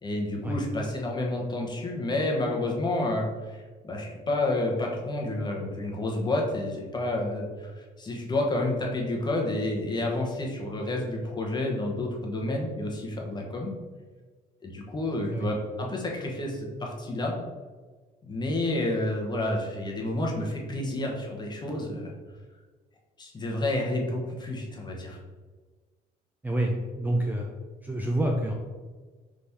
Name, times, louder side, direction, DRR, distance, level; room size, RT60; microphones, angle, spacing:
voice 1, 0.0-13.7 14.6-17.4 18.2-22.1 23.2-25.2, left 1 dB, 25° left, 0 dB, 0.9 m, -30 dB
voice 2, 26.4-27.5 27.8-28.5, right 1 dB, 10° right, 0 dB, 0.4 m, -27 dB
3.6 x 3.1 x 4.1 m, 1.4 s
cardioid pair, 110°, 17 cm